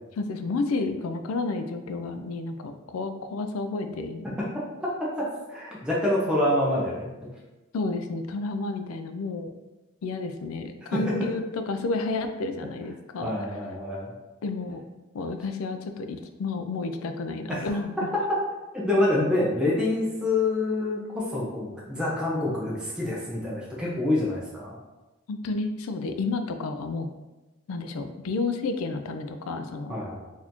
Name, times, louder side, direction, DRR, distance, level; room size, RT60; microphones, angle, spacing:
voice 1, 0.1-4.3 7.7-9.5 10.0-13.3 14.4-14.8 15.1-18.1 25.3-27.1 27.7-29.9, left 3 dB, 85° left, 8 dB, 0.4 m, -31 dB
voice 2, 4.8-7.1 10.9-11.1 13.2-14.1 17.5-17.7 18.7-24.8 29.9-30.2, left 1 dB, 5° right, -6 dB, 0.7 m, -26 dB
4.0 x 2.6 x 2.9 m, 1.1 s
head